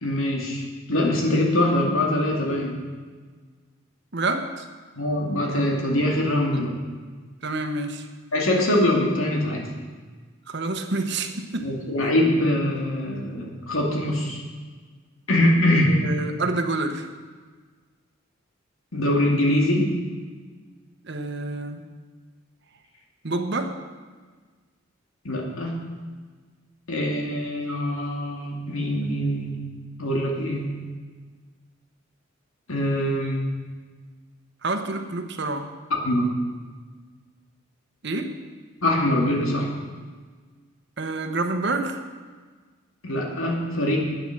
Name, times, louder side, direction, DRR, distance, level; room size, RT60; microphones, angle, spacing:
voice 1, 0.0-2.8 5.0-6.7 8.3-9.7 11.6-14.4 15.3-16.0 18.9-19.9 25.2-25.8 26.9-29.6 30.0-30.7 32.7-33.5 36.0-36.3 38.8-39.7 43.0-44.0, left 1 dB, 85° left, 0 dB, 2.5 m, -23 dB
voice 2, 4.1-4.7 7.4-8.1 10.5-11.7 15.9-17.1 21.0-21.9 23.2-23.7 34.6-35.7 38.0-38.3 41.0-42.0, right 2 dB, 55° right, 6 dB, 1.1 m, -28 dB
10.5 x 9.3 x 6.7 m, 1.5 s
head